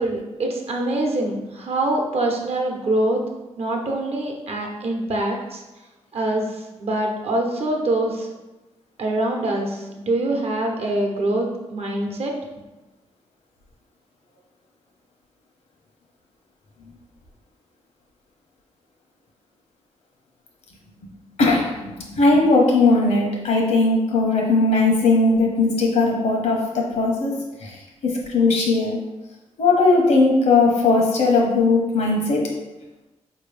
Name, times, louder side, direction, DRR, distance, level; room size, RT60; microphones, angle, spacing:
voice 1, 0.0-3.2 3.6-5.6 6.1-8.3 9.0-12.3, right 1 dB, 60° right, 1 dB, 0.9 m, -24 dB
voice 2, 21.4-27.3 27.6-27.8 28.0-29.0 29.6-32.5, left 3 dB, 75° left, -1 dB, 1.0 m, -18 dB
4.2 x 2.9 x 3.4 m, 1.1 s
cardioid pair, 65°, 12 cm